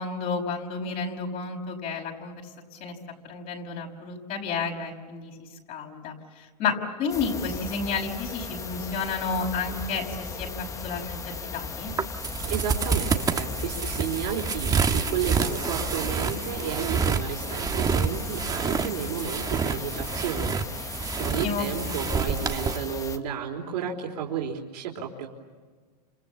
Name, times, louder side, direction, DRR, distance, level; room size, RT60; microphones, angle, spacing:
voice 1, 0.0-2.4 2.8-2.9 3.3-5.3 5.7-6.1 6.6-10.5 10.8-11.9 21.4-21.7, left 5 dB, 40° left, 1 dB, 5.8 m, -31 dB
sound 1, 7.1-23.2, left 4 dB, 15° left, 1.4 m, -37 dB
sound 2, 11.9-22.8, right 6 dB, 15° right, 1.5 m, -28 dB
voice 2, 12.4-25.3, right 7 dB, 65° right, 0 dB, 4.2 m, -32 dB
30.0 x 27.5 x 7.2 m, 1.5 s
hypercardioid pair, 125°, 21 cm